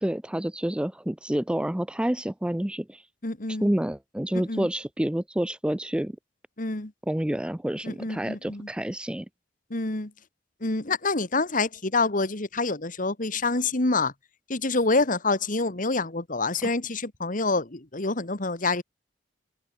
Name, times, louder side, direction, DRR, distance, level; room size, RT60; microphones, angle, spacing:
voice 1, 0.0-3.0 3.6-6.2 7.1-9.3 16.6-16.7, right 1 dB, 5° right, 0.4 m, -28 dB
voice 2, 3.2-3.7 4.3-4.7 6.6-6.9 7.8-8.7 9.7-10.1 10.6-14.1 14.5-18.8, left 3 dB, 45° left, 2.0 m, -27 dB
open air
head